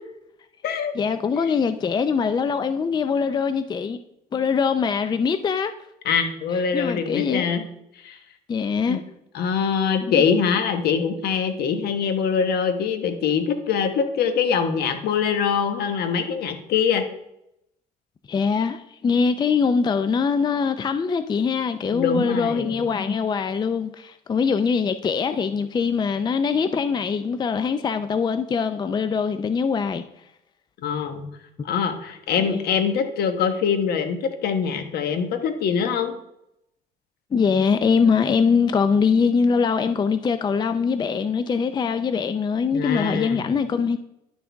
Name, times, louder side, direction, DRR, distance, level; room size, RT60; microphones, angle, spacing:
voice 1, 0.9-4.0 4.3-5.7 6.5-7.5 8.5-9.0 10.1-10.2 18.3-30.0 32.4-32.6 37.3-44.0, left 5 dB, 25° left, 0.4 m, -23 dB
voice 2, 6.0-7.6 8.0-8.2 8.9-9.0 9.3-17.0 21.9-22.8 30.8-31.3 31.6-36.1 42.7-43.5, left 6 dB, 70° left, 1.2 m, -23 dB
11.0 x 6.3 x 3.5 m
cardioid pair, 110°, 17 cm